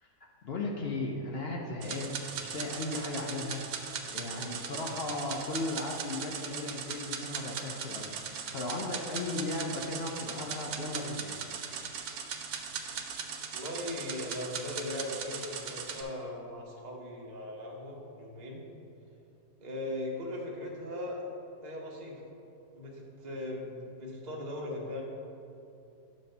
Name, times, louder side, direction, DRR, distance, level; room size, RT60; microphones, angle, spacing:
voice 1, 0.4-3.6 4.1-11.4, left 2 dB, 65° left, -1 dB, 0.6 m, -36 dB
sound 1, 1.8-16.0, right 6 dB, 70° right, 1.0 m, -39 dB
voice 2, 13.5-18.6 19.6-21.3 21.6-22.2 22.7-25.0, left 1 dB, 30° right, -2 dB, 1.0 m, -39 dB
9.1 x 3.2 x 6.5 m, 2.8 s
omnidirectional pair, 1.8 m